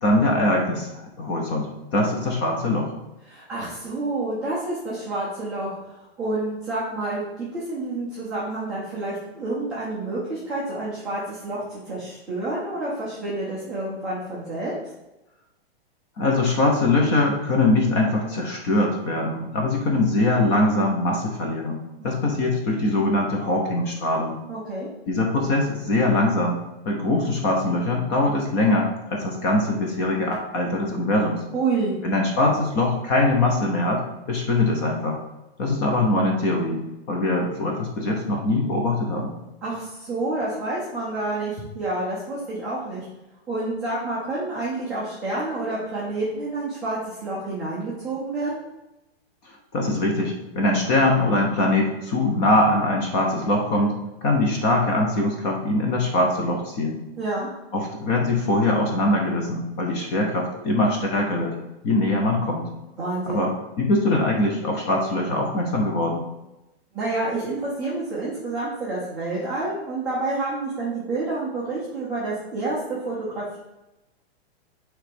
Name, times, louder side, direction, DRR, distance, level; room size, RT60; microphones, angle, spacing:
voice 1, 0.0-2.9 16.2-24.3 25.1-26.6 26.9-31.4 32.0-34.0 34.3-35.2 35.6-36.8 37.1-39.3 49.7-53.9 54.2-57.0 57.7-61.6 61.8-62.6 63.3-63.5 63.8-66.2, left 2 dB, 25° left, 1 dB, 0.8 m, -22 dB
voice 2, 3.3-14.7 22.0-22.2 24.5-24.9 31.5-32.0 39.6-43.1 43.5-48.6 57.2-57.5 63.0-63.5 66.9-73.6, right 2 dB, ahead, -11 dB, 0.3 m, -29 dB
6.4 x 3.3 x 5.1 m, 0.97 s
hypercardioid pair, 160°, 32 cm